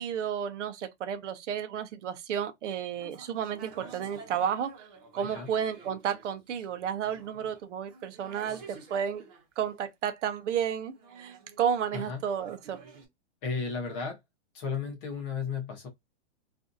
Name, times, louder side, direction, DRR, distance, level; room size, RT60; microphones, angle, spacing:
voice 1, 0.0-4.9 5.1-9.2 9.6-12.8, right 8 dB, 80° right, 0.8 m, -32 dB
sound 1, 3.0-9.5 10.9-13.1, right 5 dB, 35° right, 1.0 m, -50 dB
voice 2, 13.4-14.2 14.5-15.9, left 5 dB, 25° left, 0.7 m, -34 dB
2.6 x 2.4 x 2.5 m
supercardioid pair, 170°, 35 cm